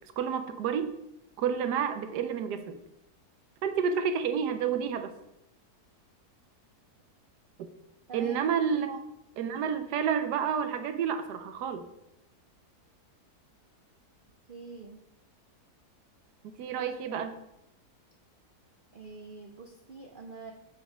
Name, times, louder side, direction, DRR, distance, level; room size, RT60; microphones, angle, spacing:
voice 1, 0.2-0.9 1.4-2.8 3.6-5.1 8.1-9.0 9.4-11.9 16.4-17.3, right 7 dB, 85° right, 9 dB, 1.3 m, -30 dB
voice 2, 8.1-8.4 8.7-8.9 14.5-15.0 16.7-17.3 18.9-20.5, right 4 dB, 60° right, 3 dB, 0.5 m, -45 dB
7.3 x 4.4 x 4.9 m, 0.84 s
omnidirectional pair, 1.7 m